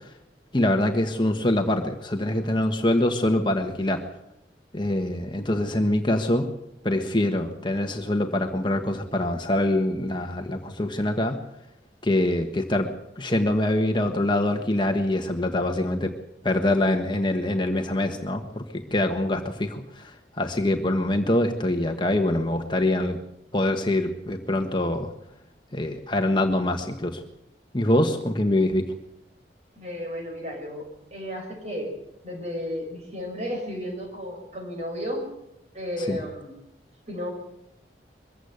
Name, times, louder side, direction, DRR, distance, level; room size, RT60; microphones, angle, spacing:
voice 1, 0.5-4.0 4.7-6.5 6.8-11.4 12.0-12.9 13.2-16.1 16.4-23.2 23.5-25.1 25.7-27.2 27.7-28.8 36.1-36.2, left 1 dB, 25° left, 4 dB, 1.4 m, -24 dB
voice 2, 29.7-31.9 32.2-35.3 35.7-36.6 37.1-37.3, equal, 35° right, 2 dB, 6.8 m, -33 dB
23.0 x 15.5 x 8.2 m, 0.83 s
head